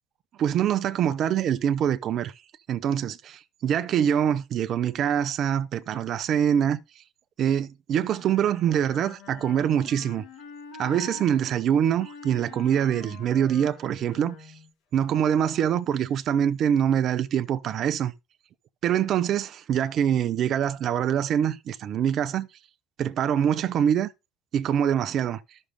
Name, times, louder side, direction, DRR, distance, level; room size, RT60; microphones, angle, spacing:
voice 1, 0.4-2.3 2.7-6.8 7.4-10.2 10.8-14.3 14.9-18.1 18.8-22.5 23.0-24.1 24.5-25.4, right 9 dB, 50° right, 0.7 m, -24 dB
Wind instrument woodwind instrument, 8.1-11.3 12.0-14.7, left 5 dB, 70° left, 3.7 m, -45 dB
14.0 x 6.5 x 2.2 m
hypercardioid pair, 70°, 0 cm